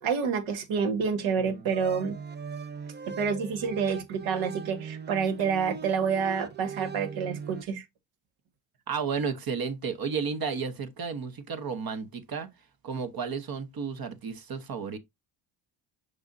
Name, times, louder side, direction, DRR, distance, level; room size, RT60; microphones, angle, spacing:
voice 1, 0.0-2.2 3.1-7.8, right 6 dB, 70° right, 1.9 m, -28 dB
sound 1, 1.4-7.6, right 6 dB, 20° right, 0.6 m, -40 dB
voice 2, 8.9-12.5 12.8-15.0, right 5 dB, 45° right, 1.2 m, -32 dB
6.8 x 5.3 x 2.7 m
cardioid pair, 90°, 49 cm